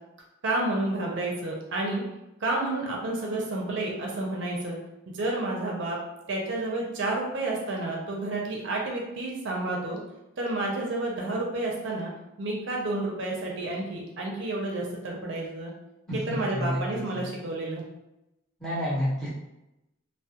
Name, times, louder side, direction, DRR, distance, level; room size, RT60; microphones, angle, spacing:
voice 1, 0.4-2.0 2.4-4.8 5.1-6.0 6.3-10.0 10.4-12.1 12.4-15.7 16.3-17.8, right 2 dB, 60° right, -1 dB, 0.4 m, -30 dB
voice 2, 16.1-17.3 18.6-19.3, equal, ahead, -9 dB, 0.7 m, -30 dB
2.2 x 2.0 x 2.7 m, 0.92 s
head